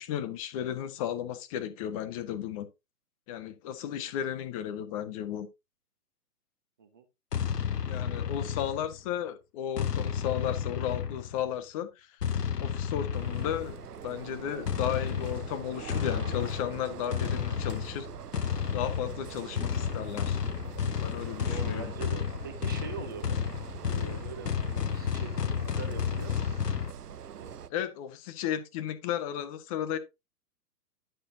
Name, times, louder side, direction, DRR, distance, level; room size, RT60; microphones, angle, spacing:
voice 1, 0.0-2.7 3.3-5.5 7.9-12.1 12.6-13.8 14.0-18.1 18.7-20.4 21.0-21.9 27.7-30.0, left 10 dB, 25° left, 0.8 m, -34 dB
sound 1, 7.3-9.1 9.8-11.5 12.2-13.8 14.6-26.9, left 7 dB, 85° left, 0.7 m, -32 dB
sound 2, 13.1-27.7, right 8 dB, 75° right, 0.7 m, -44 dB
voice 2, 21.5-23.4 23.9-26.5 27.3-27.9, right 6 dB, 15° right, 0.4 m, -43 dB
10.0 x 6.7 x 2.7 m
figure-of-eight pair, 120°, 46 cm